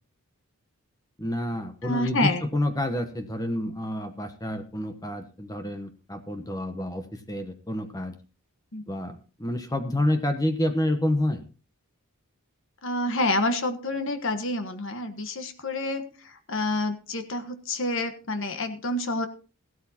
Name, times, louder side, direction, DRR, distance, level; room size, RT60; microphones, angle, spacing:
voice 1, 1.2-8.1 8.9-11.4, left 1 dB, 15° left, 7 dB, 1.0 m, -28 dB
voice 2, 1.8-2.4 8.7-8.8 12.8-19.3, left 2 dB, 55° left, 7 dB, 1.4 m, -28 dB
15.0 x 12.5 x 2.9 m, 0.36 s
head